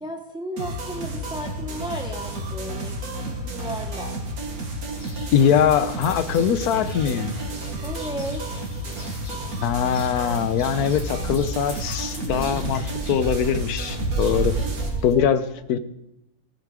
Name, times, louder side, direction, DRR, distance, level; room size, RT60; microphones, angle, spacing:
voice 1, 0.0-4.2 7.8-8.4 14.6-15.4, equal, 5° right, 4 dB, 0.5 m, -35 dB
sound 1, 0.6-14.9, right 1 dB, 75° right, 2.1 m, -32 dB
sound 2, 4.9-15.1, right 2 dB, 50° left, 2.9 m, -34 dB
voice 2, 5.3-7.3 9.6-14.6 15.0-15.8, left 8 dB, 80° left, 13 dB, 1.2 m, -22 dB
16.0 x 8.4 x 4.9 m, 0.88 s
omnidirectional pair, 1.6 m